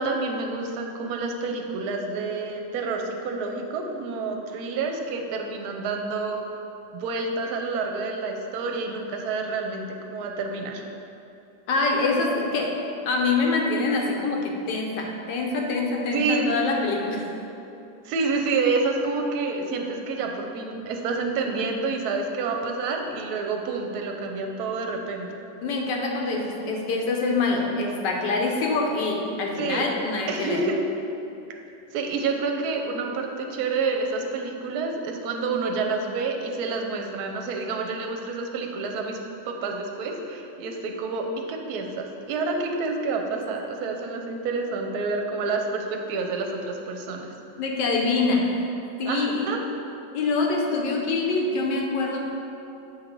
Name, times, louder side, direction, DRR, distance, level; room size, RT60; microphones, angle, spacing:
voice 1, 0.0-6.4 6.9-10.8 16.1-16.5 18.0-25.4 29.6-29.9 30.3-30.8 31.9-39.2 39.5-47.3 49.1-49.6, right 4 dB, 70° right, 3 dB, 1.0 m, -28 dB
voice 2, 11.7-12.8 13.1-17.3 25.6-30.6 47.6-48.7 49.0-49.5 50.1-52.2, left 3 dB, 75° left, 0 dB, 1.4 m, -25 dB
7.1 x 3.2 x 5.1 m, 2.8 s
omnidirectional pair, 2.0 m